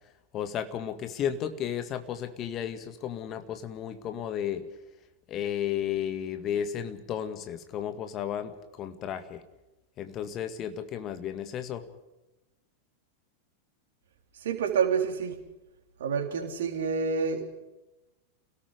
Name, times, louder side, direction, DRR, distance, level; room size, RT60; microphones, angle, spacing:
voice 1, 0.3-4.7 5.3-8.5 8.8-9.4 10.0-11.8, left 9 dB, 35° left, 9 dB, 1.9 m, -33 dB
voice 2, 14.4-15.4 16.0-17.5, right 6 dB, 60° right, 4 dB, 3.4 m, -28 dB
29.5 x 18.0 x 5.1 m, 1.0 s
figure-of-eight pair, 90°, 0 cm